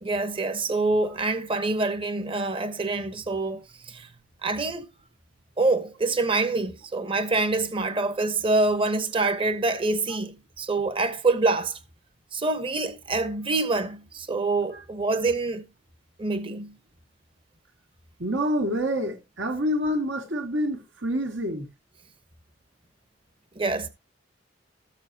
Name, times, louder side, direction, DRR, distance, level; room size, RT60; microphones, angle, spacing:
voice 1, 0.0-4.1 4.4-4.9 5.6-11.8 12.3-15.7 16.2-16.8 23.6-23.9, right 3 dB, 30° right, 1.0 m, -26 dB
voice 2, 18.2-21.7, equal, 80° right, 2.3 m, -27 dB
14.0 x 7.3 x 2.9 m
head